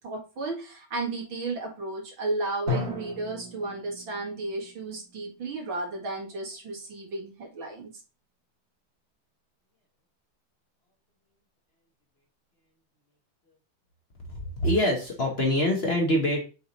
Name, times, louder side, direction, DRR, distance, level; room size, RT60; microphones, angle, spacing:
voice 1, 0.0-7.9, right 2 dB, 75° right, 0 dB, 2.6 m, -33 dB
Drum, 2.7-6.4, left 3 dB, 45° right, 2.5 m, -36 dB
voice 2, 14.3-16.4, left 1 dB, 35° left, 0 dB, 1.2 m, -25 dB
6.9 x 3.6 x 4.2 m, 0.33 s
omnidirectional pair, 2.2 m